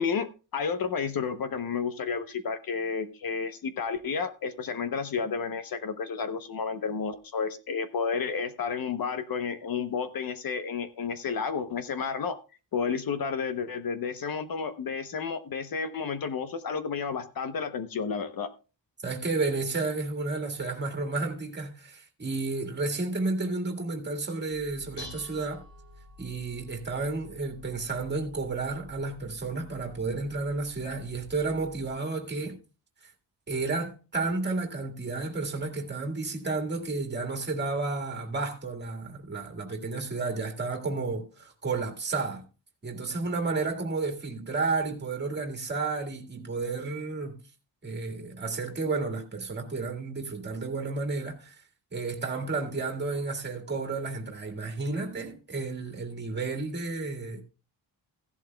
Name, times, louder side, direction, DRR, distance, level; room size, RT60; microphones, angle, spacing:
voice 1, 0.0-12.4 12.7-18.5, left 5 dB, 55° left, 0.9 m, -31 dB
voice 2, 19.0-25.6 26.2-32.6 33.5-42.4 42.8-47.4 47.8-51.6 51.9-57.4, right 3 dB, 25° right, 1.9 m, -32 dB
Dishes pots and pans, 24.5-31.9, left 2 dB, 75° left, 7.3 m, -50 dB
15.5 x 11.5 x 2.2 m
wide cardioid pair, 175°, 42 cm